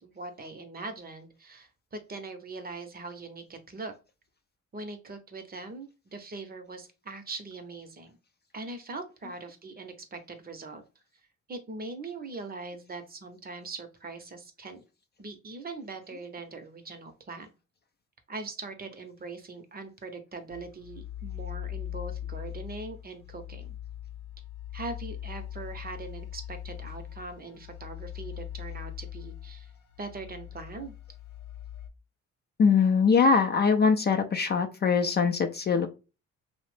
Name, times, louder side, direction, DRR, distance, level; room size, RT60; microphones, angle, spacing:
voice 1, 0.0-3.9 4.7-8.2 8.5-10.8 11.5-14.8 15.2-17.5 18.3-23.8 24.7-29.7 30.0-30.9, right 3 dB, 30° right, 7 dB, 0.6 m, -41 dB
sound 1, 20.5-31.9, left 11 dB, 85° left, 0.6 m, -41 dB
voice 2, 32.6-35.9, left 5 dB, 35° left, 5 dB, 0.4 m, -22 dB
2.7 x 2.0 x 3.1 m, 0.30 s
cardioid pair, 90°, 30 cm